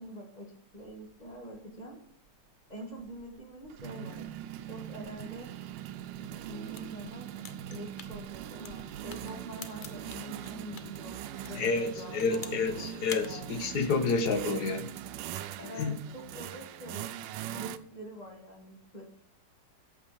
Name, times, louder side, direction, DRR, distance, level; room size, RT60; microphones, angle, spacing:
voice 1, 0.0-2.0 2.7-4.3 4.7-5.5 6.2-7.3 7.7-11.2 11.4-13.6 15.6-17.1 17.5-19.0, equal, 25° left, 2 dB, 2.0 m, -45 dB
sound 1, 0.9-1.0 1.3-1.6 2.8-17.8, right 11 dB, 90° right, 1.3 m, -41 dB
sound 2, 6.6-11.0 11.4-12.7 13.0-13.3, left 5 dB, 45° left, 0.6 m, -46 dB
voice 2, 11.5-14.9 15.7-16.0, left 4 dB, 65° left, 8 dB, 1.6 m, -29 dB
8.7 x 7.2 x 7.0 m, 0.70 s
omnidirectional pair, 1.9 m